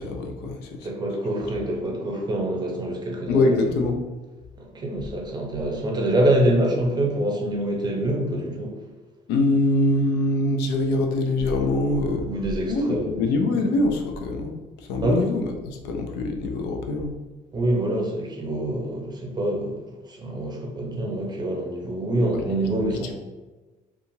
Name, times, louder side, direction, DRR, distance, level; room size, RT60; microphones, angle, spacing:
voice 1, 0.0-0.9 3.3-4.0 9.3-12.3 12.7-17.1 22.3-22.6 22.9-23.1, left 2 dB, 90° left, 3 dB, 0.5 m, -24 dB
voice 2, 0.8-3.6 4.6-8.8 12.2-13.1 15.0-15.3 17.5-23.1, right 1 dB, 25° right, 1 dB, 0.6 m, -25 dB
2.8 x 2.4 x 2.7 m, 1.2 s
cardioid pair, 110°, 17 cm